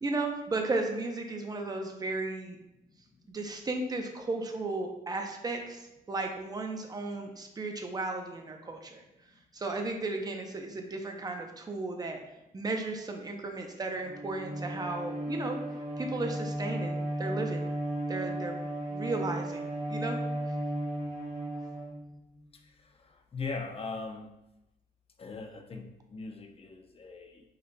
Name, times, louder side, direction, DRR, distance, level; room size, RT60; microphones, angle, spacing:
voice 1, 0.0-2.6 3.3-9.0 9.5-12.2 12.5-15.6 16.0-17.7 18.1-18.6 18.9-20.2, right 2 dB, 25° right, 3 dB, 0.6 m, -35 dB
Bowed string instrument, 14.0-22.4, right 1 dB, 45° right, 1.4 m, -35 dB
voice 2, 23.3-24.3 25.2-27.4, left 4 dB, 35° left, 3 dB, 0.6 m, -39 dB
5.3 x 4.0 x 2.2 m, 0.90 s
cardioid pair, 105°, 17 cm